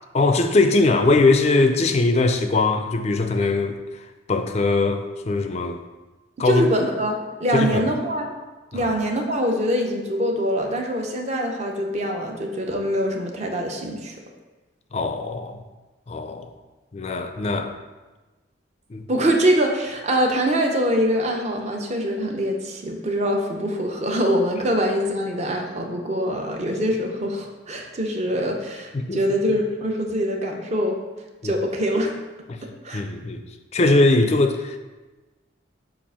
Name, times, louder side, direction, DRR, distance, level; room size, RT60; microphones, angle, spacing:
voice 1, 0.1-3.8 4.3-5.8 6.4-6.7 7.5-7.8 8.7-8.9 14.9-15.6 16.1-16.5 16.9-17.7 18.9-19.1 28.9-29.2 31.4-31.5 32.5-32.6 32.9-33.4 33.7-34.8, left 3 dB, 35° left, 7 dB, 0.4 m, -21 dB
voice 2, 6.4-8.3 8.7-14.2 19.1-31.0 31.4-32.1 32.8-33.0, equal, 35° right, 2 dB, 0.7 m, -24 dB
7.3 x 2.5 x 5.4 m, 1.2 s
head